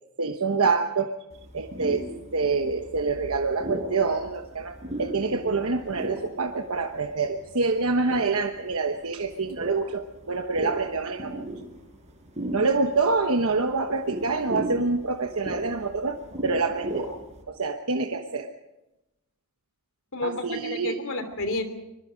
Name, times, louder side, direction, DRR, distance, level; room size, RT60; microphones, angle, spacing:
voice 1, 0.2-1.2 1.5-11.5 12.5-17.1 17.5-18.5 20.2-21.0, right 4 dB, 70° right, 4 dB, 1.2 m, -26 dB
sound 1, 1.3-17.4, right 1 dB, 30° right, 5.4 m, -37 dB
voice 2, 20.1-21.6, left 2 dB, 65° left, 8 dB, 3.1 m, -30 dB
24.5 x 22.5 x 5.2 m, 0.95 s
head